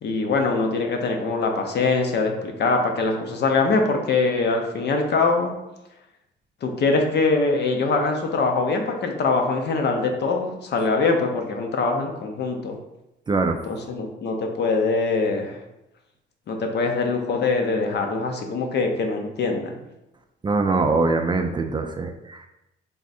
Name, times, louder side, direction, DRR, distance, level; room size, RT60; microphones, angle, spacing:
voice 1, 0.0-5.6 6.6-12.8 13.7-15.6 16.5-19.8, left 3 dB, 60° left, 3 dB, 0.7 m, -23 dB
voice 2, 13.3-13.6 20.4-22.5, right 3 dB, 25° right, 5 dB, 0.3 m, -23 dB
3.5 x 2.4 x 4.1 m, 0.92 s
cardioid pair, 90°, 20 cm